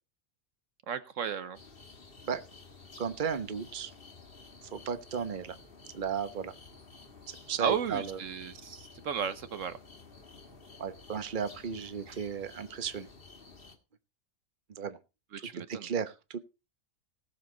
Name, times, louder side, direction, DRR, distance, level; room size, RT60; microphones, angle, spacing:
voice 1, 0.9-1.6 7.6-9.8 12.1-12.2 15.3-15.9, right 7 dB, 70° right, 12 dB, 1.2 m, -34 dB
sound 1, 1.5-13.8, left 4 dB, 45° left, 2.0 m, -53 dB
voice 2, 3.0-3.9 4.7-5.6 5.9-6.5 7.3-8.2 10.8-13.1 14.7-15.0 15.7-16.4, right 7 dB, 40° right, 11 dB, 1.1 m, -35 dB
18.5 x 7.3 x 3.9 m, 0.29 s
omnidirectional pair, 1.4 m